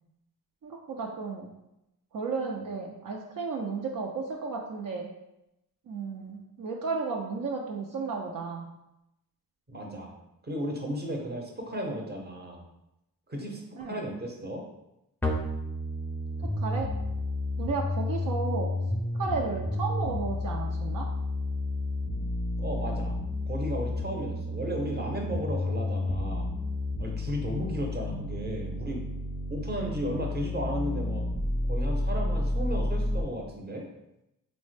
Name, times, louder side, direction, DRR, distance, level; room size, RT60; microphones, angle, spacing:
voice 1, 0.6-1.5 2.1-5.1 5.9-8.6 13.8-14.0 16.4-16.9 17.6-18.7 19.2-21.1, right 4 dB, 60° right, -1 dB, 0.5 m, -33 dB
voice 2, 9.7-10.1 10.4-12.6 13.3-14.6 22.6-23.1 23.5-26.5 27.0-29.0 29.5-31.2 31.7-33.9, equal, 25° right, 0 dB, 0.7 m, -34 dB
sound 1, 15.2-33.2, left 1 dB, 5° left, 0.4 m, -31 dB
3.3 x 2.1 x 3.2 m, 0.89 s
cardioid pair, 55°, 36 cm